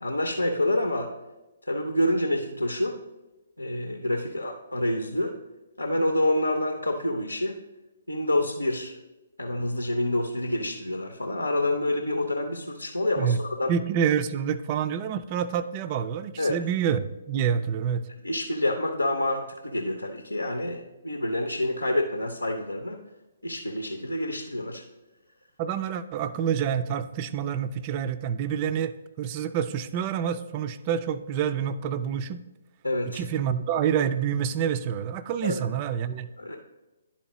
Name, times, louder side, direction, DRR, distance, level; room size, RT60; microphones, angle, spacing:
voice 1, 0.0-1.1 1.7-3.0 3.6-5.3 5.8-7.6 8.1-8.9 9.4-13.7 16.4-16.6 18.2-23.0 23.4-24.8 32.8-33.2 35.4-35.6 36.4-36.6, left 1 dB, 85° left, 4 dB, 0.7 m, -27 dB
voice 2, 13.7-18.1 25.6-32.4 33.0-36.3, right 8 dB, 30° right, 12 dB, 0.4 m, -27 dB
11.0 x 4.3 x 3.0 m, 1.1 s
figure-of-eight pair, 130°, 0 cm